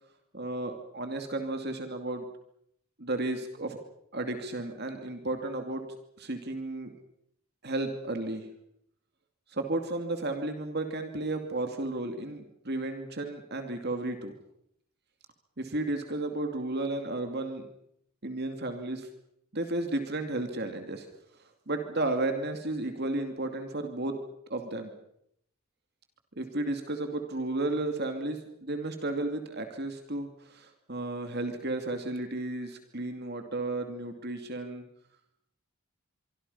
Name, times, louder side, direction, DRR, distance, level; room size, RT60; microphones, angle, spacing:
voice 1, 0.3-2.3 3.0-3.8 4.1-5.8 6.2-6.9 7.6-8.5 9.5-14.3 15.6-17.6 18.2-19.1 19.5-21.1 21.7-24.2 24.5-24.9 26.4-34.8, right 2 dB, 45° right, 6 dB, 2.6 m, -33 dB
25.5 x 24.5 x 5.6 m, 0.74 s
head